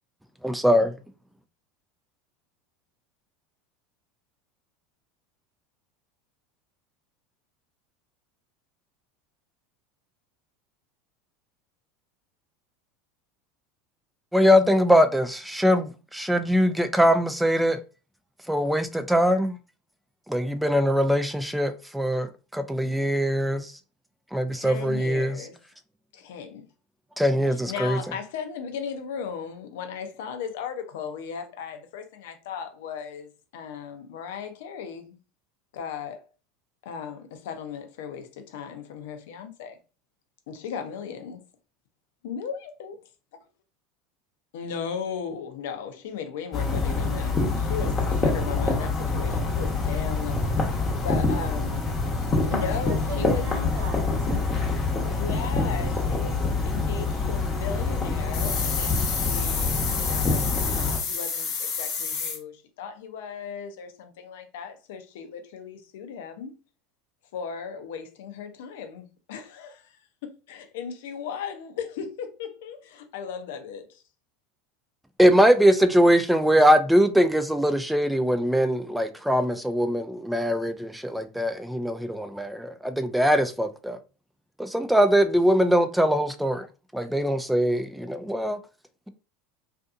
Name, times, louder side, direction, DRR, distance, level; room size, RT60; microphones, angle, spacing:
voice 1, 0.4-0.9 14.3-17.8 18.5-19.6 20.3-23.7 24.3-25.4 27.2-28.0 75.2-84.0 84.6-86.7 86.9-88.6, equal, 5° right, 0.3 m, -22 dB
voice 2, 24.5-25.6 26.1-26.7 27.5-35.2 35.7-36.2 36.8-39.8 40.5-41.4 42.2-43.0 44.5-50.6 51.0-51.8 52.5-53.5 55.1-66.5 67.3-70.0 70.2-74.0, left 7 dB, 80° left, 0.5 m, -36 dB
sound 1, 46.5-61.0, left 3 dB, 25° left, 0.9 m, -26 dB
voice 3, 52.5-55.6, right 3 dB, 65° right, 1.2 m, -39 dB
sound 2, 58.3-62.4, left 5 dB, 55° left, 0.8 m, -30 dB
2.5 x 2.5 x 2.3 m
supercardioid pair, 110°, 0 cm